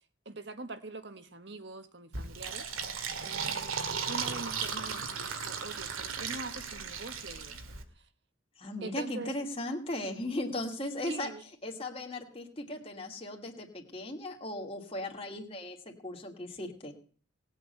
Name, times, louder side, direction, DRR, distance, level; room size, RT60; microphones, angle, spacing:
voice 1, 0.2-2.7 3.2-3.8 4.1-8.1 8.8-9.3 11.1-11.4, right 3 dB, 55° right, 1.5 m, -43 dB
Fill (with liquid), 2.1-7.8, right 6 dB, 90° right, 2.3 m, -36 dB
voice 2, 8.6-11.3 11.6-16.9, left 1 dB, 30° left, 2.3 m, -37 dB
19.5 x 7.8 x 7.9 m
head